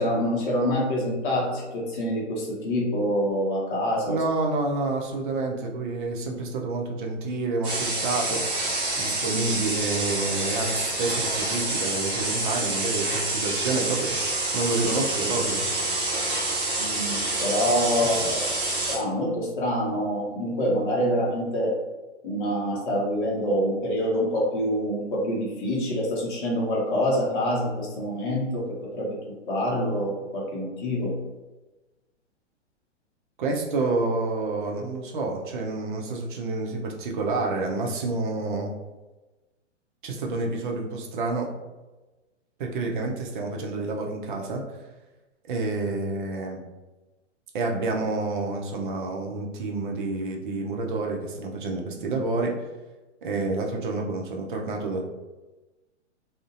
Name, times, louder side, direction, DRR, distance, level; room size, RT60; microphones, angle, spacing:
voice 1, 0.0-4.2 16.8-18.4 18.9-21.8 22.2-28.6 28.9-31.2, equal, 45° left, -4 dB, 0.7 m, -26 dB
voice 2, 4.1-8.4 9.0-15.6 18.0-18.3 33.4-38.7 40.0-41.5 42.6-44.6 45.4-46.6 47.5-52.5 53.2-55.0, right 3 dB, 45° right, 1 dB, 0.5 m, -29 dB
sound 1, 7.6-19.0, right 2 dB, 15° right, 1.1 m, -27 dB
2.5 x 2.1 x 2.4 m, 1.1 s
figure-of-eight pair, 120°, 36 cm